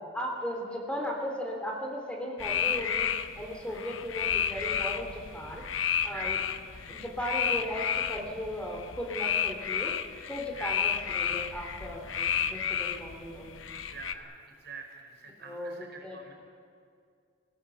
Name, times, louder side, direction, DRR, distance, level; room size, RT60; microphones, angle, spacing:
voice 1, 0.0-3.1 3.4-5.6 6.0-6.4 6.8-9.9 10.3-13.6 15.4-16.2, equal, 5° left, 0 dB, 3.0 m, -36 dB
sound 1, 2.4-14.1, left 8 dB, 85° left, 1.0 m, -32 dB
voice 2, 6.1-6.4 10.5-10.8 13.9-16.3, right 5 dB, 60° right, 4 dB, 5.0 m, -46 dB
30.0 x 17.0 x 7.0 m, 2.3 s
head